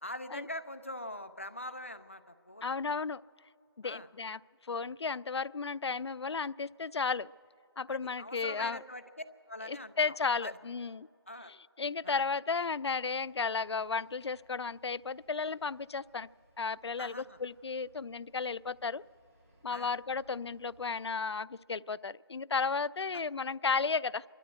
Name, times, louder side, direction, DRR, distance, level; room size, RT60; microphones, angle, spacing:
voice 1, 0.0-2.7 3.8-4.1 7.9-9.0 9.5-10.6 11.3-11.5 12.0-12.2 17.0-17.4 19.7-19.9 23.1-23.2, left 1 dB, 30° left, 11 dB, 0.5 m, -43 dB
voice 2, 2.6-3.2 3.8-4.4 4.7-7.3 7.8-8.8 9.7-11.1 11.5-16.3 16.6-19.0 19.6-24.2, left 5 dB, 85° left, 21 dB, 0.4 m, -34 dB
sound 1, 12.8-21.1, right 1 dB, 35° right, 4.1 m, -67 dB
26.0 x 13.0 x 8.1 m, 2.6 s
figure-of-eight pair, 180°, 14 cm